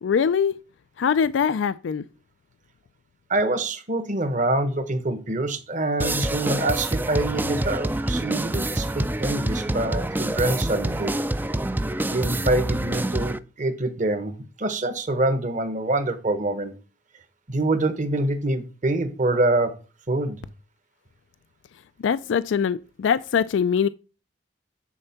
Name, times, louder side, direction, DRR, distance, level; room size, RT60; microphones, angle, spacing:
voice 1, 0.0-0.5 1.0-2.0 22.0-23.9, left 7 dB, 85° left, 0.4 m, -22 dB
voice 2, 3.3-11.1 12.1-16.7 17.5-19.7 20.1-20.4, right 2 dB, 45° right, 1.2 m, -25 dB
sound 1, 6.0-13.4, right 1 dB, 10° right, 0.3 m, -26 dB
10.0 x 4.4 x 5.8 m
head